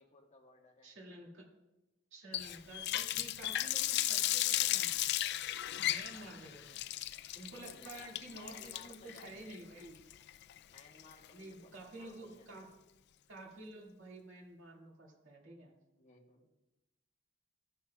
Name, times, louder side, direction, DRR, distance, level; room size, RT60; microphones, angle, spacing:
voice 1, 0.0-0.9 6.1-6.4 7.5-9.5 10.7-12.7 16.0-16.5, left 3 dB, 35° left, 1 dB, 1.5 m, -60 dB
voice 2, 0.8-1.5 2.1-5.0 5.8-6.8 7.3-10.0 11.3-12.7 13.3-15.7, right 2 dB, 70° right, -2 dB, 2.1 m, -51 dB
Water tap faucet, 2.3-11.3, left 14 dB, 55° left, 0.4 m, -35 dB
14.5 x 10.0 x 2.3 m, 0.99 s
head